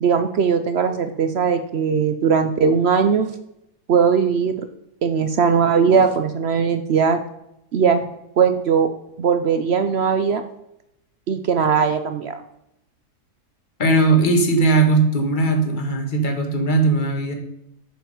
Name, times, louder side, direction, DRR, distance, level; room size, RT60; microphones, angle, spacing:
voice 1, 0.0-3.3 3.9-4.7 5.0-7.2 7.7-8.1 8.4-8.9 9.2-10.4 11.3-12.4, right 6 dB, 70° right, 8 dB, 0.6 m, -19 dB
voice 2, 13.8-17.3, right 3 dB, 30° left, 4 dB, 1.4 m, -18 dB
7.4 x 7.2 x 5.1 m, 0.83 s
omnidirectional pair, 1.8 m